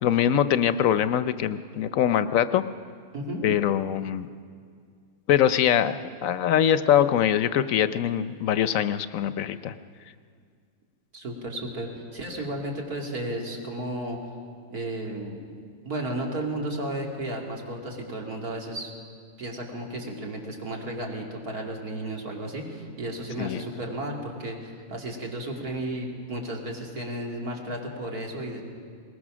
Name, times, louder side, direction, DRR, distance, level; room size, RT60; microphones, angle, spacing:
voice 1, 0.0-2.6 3.4-4.3 5.3-5.9 6.2-9.7 23.4-23.6, left 10 dB, 70° left, 13 dB, 1.0 m, -23 dB
voice 2, 11.1-14.2 14.7-15.4 15.8-18.9 19.4-28.6, right 1 dB, 90° right, 0 dB, 3.1 m, -33 dB
21.0 x 19.5 x 6.2 m, 2.1 s
omnidirectional pair, 1.5 m